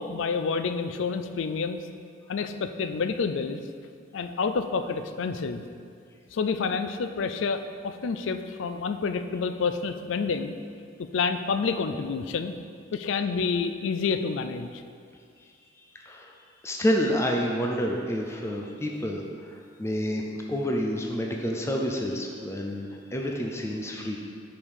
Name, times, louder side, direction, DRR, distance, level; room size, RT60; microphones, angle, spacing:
voice 1, 0.0-1.9 2.3-3.6 4.1-5.6 6.3-10.6 11.0-12.5 12.9-14.7, left 5 dB, 80° left, 9 dB, 0.4 m, -28 dB
voice 2, 16.6-19.5 19.8-24.2, equal, 15° left, 0 dB, 0.4 m, -28 dB
5.1 x 4.8 x 5.5 m, 2.2 s
head